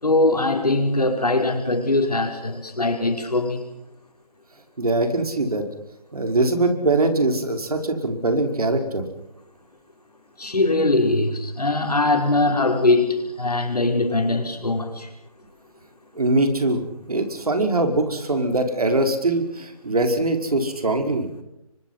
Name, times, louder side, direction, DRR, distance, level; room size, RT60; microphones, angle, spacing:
voice 1, 0.0-3.6 10.4-15.1, left 2 dB, 90° left, 3 dB, 5.9 m, -21 dB
voice 2, 4.8-5.6 6.1-9.0 16.2-16.8 17.1-21.2, right 2 dB, 75° right, 5 dB, 5.2 m, -22 dB
29.5 x 24.5 x 5.8 m, 0.81 s
figure-of-eight pair, 155°, 19 cm